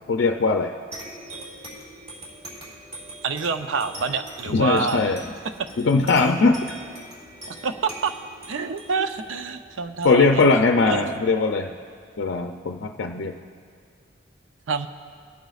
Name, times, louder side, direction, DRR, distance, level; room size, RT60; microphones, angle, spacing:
voice 1, 0.1-0.7 4.5-5.2 5.8-6.8 10.0-11.7 12.2-13.4, left 3 dB, 65° left, 4 dB, 0.5 m, -20 dB
sound 1, 0.9-12.0, right 1 dB, 35° right, 3.1 m, -43 dB
voice 2, 3.2-5.0 7.5-8.1 8.5-10.4 10.8-11.1 14.7-14.9, right 5 dB, 80° right, 9 dB, 0.6 m, -27 dB
20.5 x 9.1 x 2.4 m, 2.2 s
head